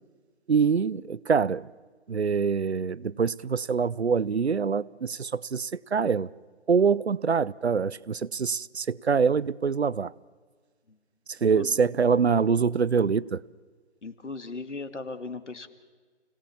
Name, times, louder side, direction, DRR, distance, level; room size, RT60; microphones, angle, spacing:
voice 1, 0.5-1.7 2.1-6.3 6.7-10.1 11.3-13.4, right 5 dB, 65° right, 0.7 m, -25 dB
voice 2, 14.0-15.7, left 3 dB, 90° left, 2.3 m, -37 dB
29.5 x 18.0 x 7.2 m
figure-of-eight pair, 180°, 35 cm